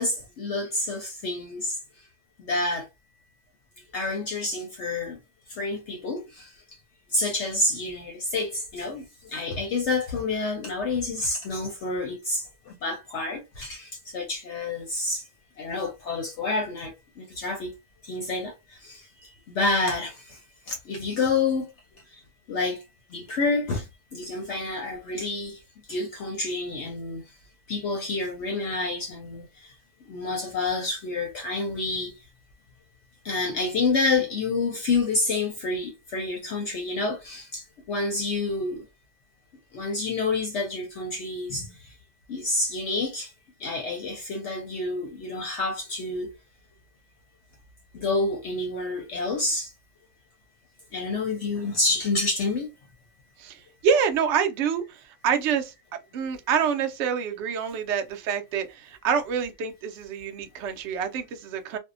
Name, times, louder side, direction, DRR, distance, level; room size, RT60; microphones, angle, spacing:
voice 1, 0.0-1.8 2.4-2.9 3.9-5.2 5.5-6.5 7.1-15.2 15.6-17.7 18.0-19.3 19.5-20.4 20.7-21.7 22.5-22.8 23.1-23.9 24.1-25.6 25.9-27.2 27.7-29.7 30.1-32.1 33.2-38.8 39.7-41.9 42.3-43.3 43.6-46.3 47.9-49.7 50.9-52.7, left 3 dB, 65° left, 0.8 m, -28 dB
voice 2, 53.4-55.7 56.1-61.8, right 7 dB, 65° right, 0.7 m, -27 dB
2.7 x 2.1 x 2.4 m
omnidirectional pair, 1.6 m